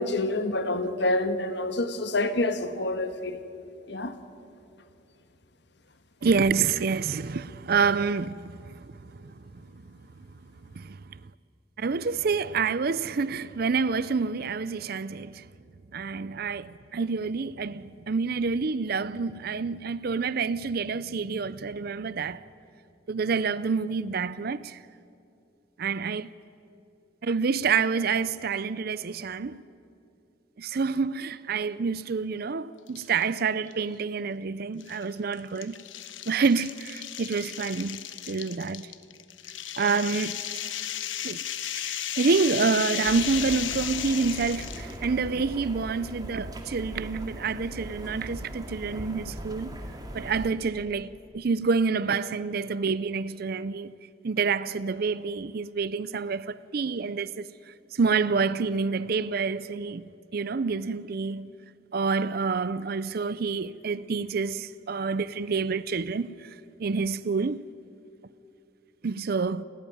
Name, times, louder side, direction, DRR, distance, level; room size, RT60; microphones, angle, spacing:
voice 1, 0.0-3.4 3.9-4.1, left 2 dB, 60° left, 1.5 m, -27 dB
voice 2, 6.2-10.3 10.7-11.3 11.8-15.5 15.9-22.4 23.1-24.8 25.8-26.3 27.2-29.6 30.6-35.8 36.3-38.9 39.8-40.4 41.2-41.4 41.8-49.7 50.1-53.9 54.2-61.5 61.9-67.6 69.0-69.6, right 5 dB, 50° right, 0.5 m, -28 dB
sound 1, 32.9-33.3 33.7-33.8 34.8-44.9, left 11 dB, 80° left, 1.1 m, -35 dB
sound 2, 43.0-50.5, equal, 20° right, 2.1 m, -40 dB
29.5 x 14.5 x 9.4 m
head